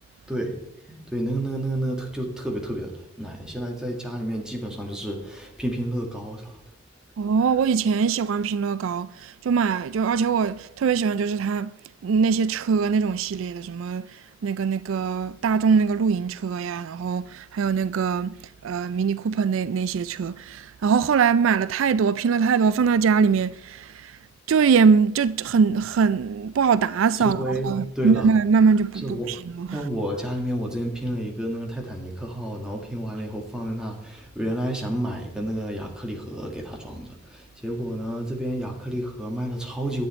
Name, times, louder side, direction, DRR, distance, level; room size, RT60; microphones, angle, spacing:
voice 1, 0.3-0.6 1.0-6.6 27.2-28.3 29.0-29.3 29.7-40.1, right 1 dB, 5° right, 1.8 m, -30 dB
voice 2, 7.2-11.7 12.0-18.3 18.6-24.2 24.5-29.8, right 5 dB, 75° right, 0.4 m, -22 dB
10.5 x 8.5 x 4.3 m
head